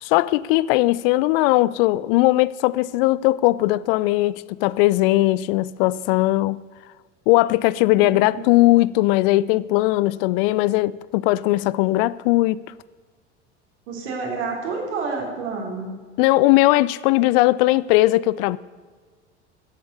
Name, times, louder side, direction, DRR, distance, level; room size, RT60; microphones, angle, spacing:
voice 1, 0.0-6.6 7.3-12.6 16.2-18.6, left 18 dB, 55° left, 0.5 m, -19 dB
voice 2, 8.0-8.4 8.6-8.7 13.9-15.9, right 4 dB, 70° right, 3.5 m, -29 dB
13.5 x 7.8 x 6.8 m
hypercardioid pair, 75°, 35 cm